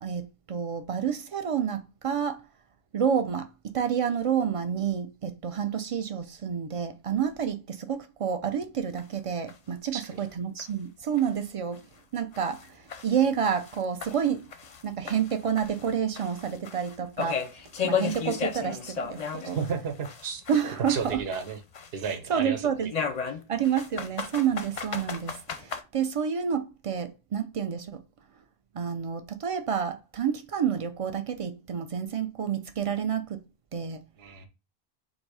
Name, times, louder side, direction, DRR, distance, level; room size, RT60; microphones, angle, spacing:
voice 1, 0.0-2.4 2.9-11.8 12.1-14.5 14.8-17.4 17.8-19.6 20.5-21.2 22.0-22.9 23.5-28.0 28.7-33.4 33.7-34.0, right 8 dB, 50° right, 0.4 m, -29 dB
sound 1, 9.0-9.1 9.5-9.6 10.0-10.1 10.6-10.7 11.2-11.3 11.7-11.8 12.3-14.8 15.1-19.7 20.0-22.1 22.9-25.8, left 7 dB, 50° left, 0.5 m, -34 dB
voice 2, 19.4-20.4 20.9-21.6 21.9-22.7 34.2-34.5, right 6 dB, 70° right, 0.9 m, -32 dB
3.9 x 2.6 x 4.6 m
omnidirectional pair, 1.1 m